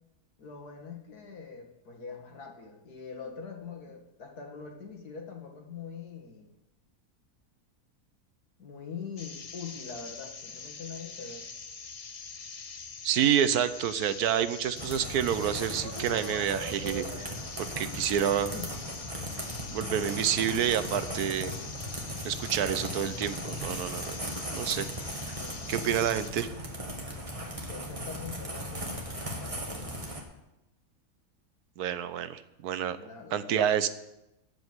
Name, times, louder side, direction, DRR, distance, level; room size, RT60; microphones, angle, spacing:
voice 1, 0.4-6.5 8.6-11.5 18.5-18.7 25.3-25.7 27.7-30.2 33.0-33.9, left 5 dB, 80° left, 3 dB, 2.3 m, -43 dB
sound 1, 9.2-26.3, left 5 dB, 45° left, 0.4 m, -44 dB
voice 2, 13.0-17.3 17.6-18.5 19.7-21.5 22.2-24.1 24.5-25.3 25.7-26.5 31.8-33.0 33.3-33.9, right 9 dB, 80° right, 13 dB, 1.3 m, -28 dB
sound 2, 14.8-30.2, equal, 20° right, 1.9 m, -37 dB
14.5 x 5.2 x 9.5 m, 0.91 s
omnidirectional pair, 1.6 m